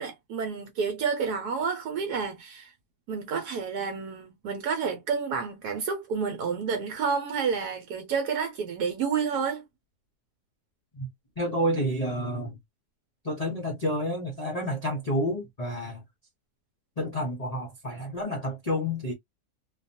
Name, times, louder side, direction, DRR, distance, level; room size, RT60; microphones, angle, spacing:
voice 1, 0.0-2.7 3.1-9.6, right 5 dB, 75° right, 1.2 m, -30 dB
voice 2, 11.4-12.6 13.2-16.0 17.0-19.1, equal, 40° left, 0.5 m, -29 dB
2.7 x 2.3 x 2.6 m
omnidirectional pair, 1.7 m